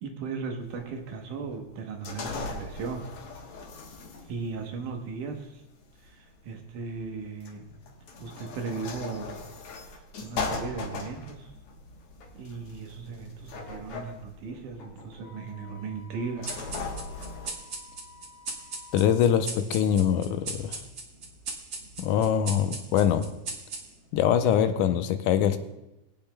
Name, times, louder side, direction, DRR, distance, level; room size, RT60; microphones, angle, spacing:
voice 1, 0.0-3.1 4.3-5.6 6.0-7.8 8.2-9.4 9.7-11.5 12.3-16.6, right 5 dB, 80° right, 3 dB, 2.6 m, -37 dB
sound 1, 0.6-17.5, left 4 dB, 60° left, 1.8 m, -39 dB
Wind instrument woodwind instrument, 15.2-19.3, left 6 dB, 25° right, 2.0 m, -52 dB
sound 2, 16.5-24.2, right 3 dB, 50° right, 1.5 m, -39 dB
voice 2, 18.9-20.8 22.0-23.3 24.1-25.6, left 9 dB, 90° left, 8 dB, 2.1 m, -23 dB
21.5 x 8.7 x 2.2 m, 0.94 s
omnidirectional pair, 3.5 m